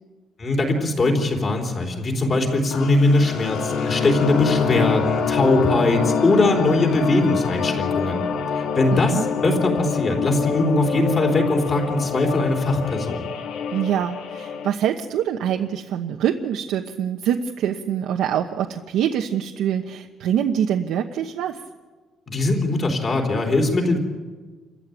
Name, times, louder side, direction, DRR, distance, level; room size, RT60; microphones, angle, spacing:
voice 1, 0.4-8.2 8.5-13.3 22.3-24.0, left 2 dB, 30° left, 2 dB, 3.6 m, -21 dB
sound 1, 2.7-14.7, left 6 dB, 75° left, 2.7 m, -26 dB
voice 2, 8.9-9.3 13.7-21.6, right 9 dB, 80° right, 4 dB, 1.0 m, -24 dB
28.0 x 14.5 x 9.2 m, 1.4 s
cardioid pair, 165°, 0 cm